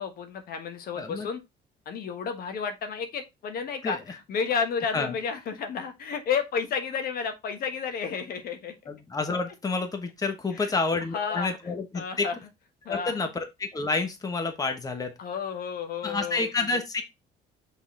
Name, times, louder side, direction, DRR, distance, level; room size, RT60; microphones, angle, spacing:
voice 1, 0.0-1.4 1.8-8.7 10.5-10.7 11.1-11.6 11.9-12.4 12.8-13.3 15.2-16.4, left 6 dB, 60° left, 1.4 m, -31 dB
voice 2, 1.0-1.3 3.8-4.0 4.9-5.2 8.9-12.3 12.9-15.1 16.0-17.0, left 3 dB, 20° left, 1.2 m, -29 dB
6.1 x 4.1 x 3.8 m
cardioid pair, 110°, 17 cm